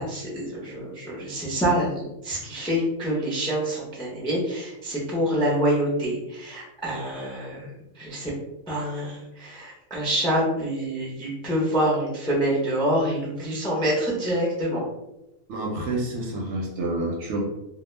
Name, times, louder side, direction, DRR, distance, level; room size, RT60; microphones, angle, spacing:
voice 1, 0.0-8.3 8.7-14.8, equal, 5° left, -5 dB, 0.3 m, -26 dB
voice 2, 15.5-17.4, right 2 dB, 65° right, 0 dB, 0.8 m, -28 dB
2.2 x 2.1 x 3.1 m, 0.91 s
omnidirectional pair, 1.4 m